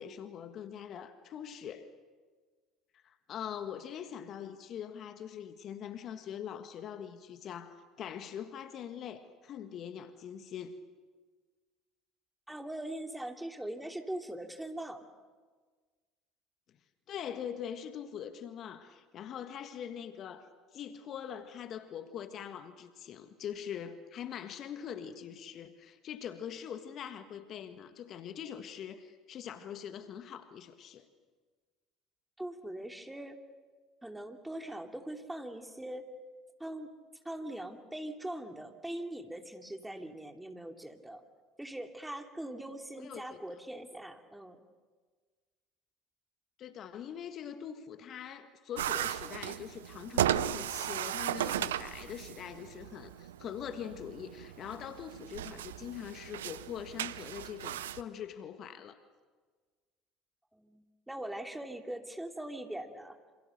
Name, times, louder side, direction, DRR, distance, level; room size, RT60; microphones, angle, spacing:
voice 1, 0.0-1.9 3.0-10.8 17.1-31.1 43.0-43.4 46.6-59.0, left 9 dB, 50° left, 9 dB, 1.6 m, -43 dB
voice 2, 12.5-15.0 32.4-33.4 34.0-36.1 36.6-36.9 37.2-41.2 41.6-44.6 60.5-63.2, right 1 dB, 5° right, 4 dB, 2.9 m, -41 dB
sound 1, 48.8-58.0, right 12 dB, 75° right, 0.7 m, -36 dB
27.5 x 27.5 x 6.7 m, 1.5 s
figure-of-eight pair, 65°, 0 cm